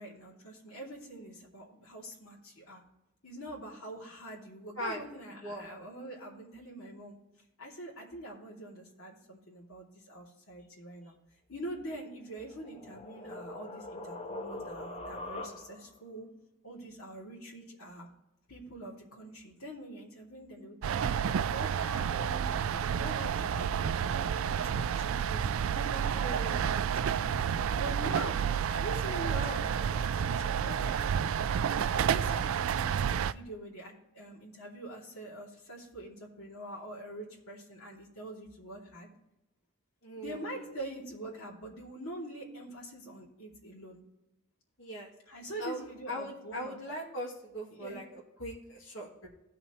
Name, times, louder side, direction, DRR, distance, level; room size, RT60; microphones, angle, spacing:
voice 1, 0.0-2.8 3.2-7.2 7.6-11.1 11.5-16.3 16.6-18.1 18.5-21.1 21.5-22.4 22.7-27.4 27.8-28.4 28.6-31.3 31.7-39.1 40.2-44.0 45.3-46.8 47.7-48.0, right 1 dB, 80° left, -3 dB, 2.7 m, -44 dB
sound 1, 12.2-16.0, left 2 dB, 25° left, 0.8 m, -43 dB
sound 2, 20.8-33.3, right 8 dB, 70° right, 0.3 m, -30 dB
voice 2, 25.9-26.6 29.3-29.6 40.0-40.8 44.8-45.1 45.6-49.3, equal, 60° left, -3 dB, 2.4 m, -40 dB
17.0 x 5.9 x 3.1 m, 0.93 s
head